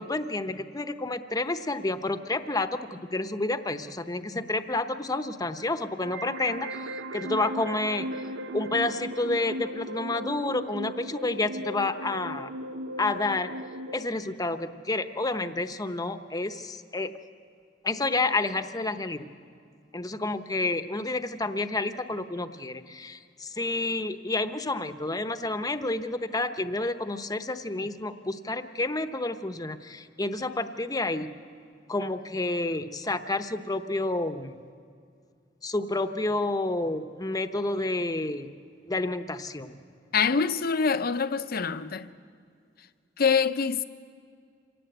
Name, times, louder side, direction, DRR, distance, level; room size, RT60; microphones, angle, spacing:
voice 1, 0.0-8.1 8.5-12.5 13.0-13.6 13.9-17.1 17.8-19.3 19.9-31.3 31.9-34.6 35.6-38.5 38.9-39.8, left 2 dB, 20° left, 0.9 m, -30 dB
sound 1, 6.0-14.0, right 1 dB, 75° right, 0.7 m, -37 dB
voice 2, 40.1-42.1 43.2-43.8, left 5 dB, 55° left, 0.7 m, -25 dB
26.5 x 18.5 x 8.0 m
head